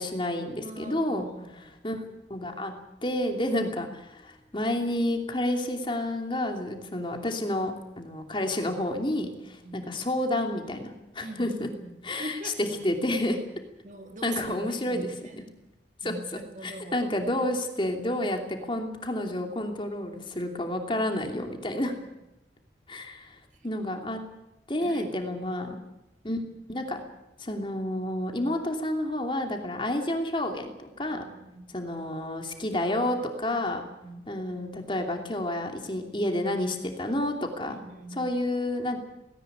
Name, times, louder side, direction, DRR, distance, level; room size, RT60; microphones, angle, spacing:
voice 1, 0.0-1.2 1.8-2.7 3.0-11.7 12.0-13.4 14.2-15.1 16.0-22.0 22.9-23.4 23.6-24.2 24.7-25.8 26.2-26.4 26.7-27.0 27.4-31.2 31.7-33.8 34.3-37.8 38.1-39.0, left 1 dB, 25° left, 4 dB, 2.9 m, -30 dB
voice 2, 0.6-1.8 9.6-9.9 11.2-12.6 13.8-15.5 16.0-17.1 17.8-17.9 20.4-20.5 23.5-23.7 24.8-25.1 31.1-31.7 33.5-34.4 37.6-38.3, right 1 dB, 45° right, 4 dB, 2.9 m, -43 dB
18.5 x 18.0 x 9.5 m, 0.94 s
head